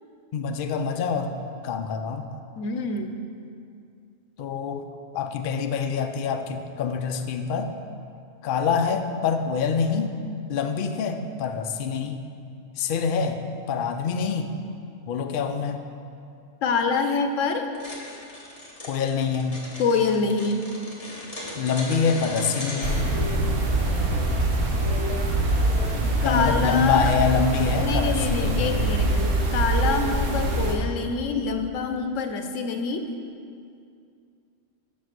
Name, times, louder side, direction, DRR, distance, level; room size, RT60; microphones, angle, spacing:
voice 1, 0.3-1.4 1.6-2.3 4.4-4.8 5.1-7.7 8.4-10.1 10.5-12.2 12.8-13.4 13.7-14.5 15.1-15.8 18.8-19.6 21.6-23.0 26.2-28.8, left 6 dB, 60° left, 6 dB, 0.6 m, -25 dB
voice 2, 2.6-3.2 16.6-17.7 19.8-20.7 23.1-23.2 26.2-27.1 27.8-33.1, left 4 dB, 85° left, 6 dB, 1.0 m, -26 dB
sound 1, 17.7-23.0, left 1 dB, 30° left, 1.3 m, -37 dB
sound 2, 22.8-30.7, right 2 dB, 80° right, 1.3 m, -24 dB
7.3 x 5.3 x 5.9 m, 2.4 s
omnidirectional pair, 1.3 m